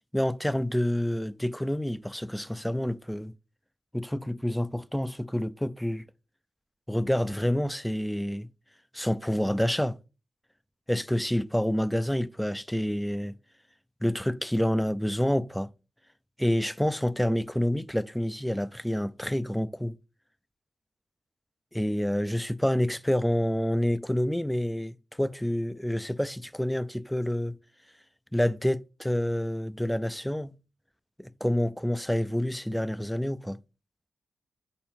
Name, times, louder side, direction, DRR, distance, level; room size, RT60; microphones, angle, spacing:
voice 1, 0.1-3.3 3.9-6.0 6.9-8.5 8.9-10.0 10.9-13.4 14.0-15.7 16.4-19.9 21.7-27.6 28.3-30.5 31.2-33.6, equal, 5° left, 0.3 m, -28 dB
8.4 x 4.4 x 3.5 m
wide cardioid pair, 130°, 0 cm